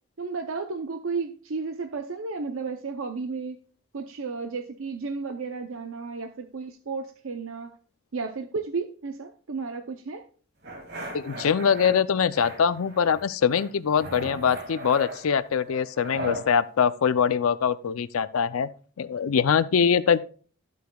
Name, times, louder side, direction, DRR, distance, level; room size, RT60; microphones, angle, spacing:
voice 1, 0.2-3.6 3.9-7.7 8.1-10.2, right 4 dB, 75° right, 0.7 m, -33 dB
sound 1, 10.6-11.9 12.3-13.2 13.5-16.5, right 1 dB, 50° right, 2.1 m, -37 dB
voice 2, 11.1-18.7 19.0-20.2, left 7 dB, 90° left, 0.5 m, -23 dB
12.5 x 8.3 x 2.3 m
head